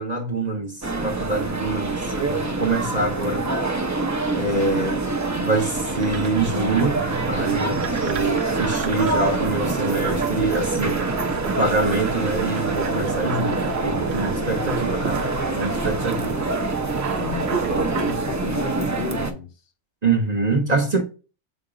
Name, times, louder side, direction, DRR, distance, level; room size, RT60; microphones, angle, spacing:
voice 1, 0.0-3.5 4.3-4.9 5.4-7.0 7.3-11.1 11.4-16.5 20.0-21.0, right 3 dB, 40° right, 0.9 m, -25 dB
sound 1, 0.8-19.3, right 3 dB, 20° right, 0.5 m, -26 dB
voice 2, 4.5-5.5 17.1-19.5, left 7 dB, 55° left, 0.8 m, -33 dB
sound 2, 5.9-18.1, right 7 dB, 65° right, 0.8 m, -33 dB
7.7 x 2.9 x 5.0 m
omnidirectional pair, 1.3 m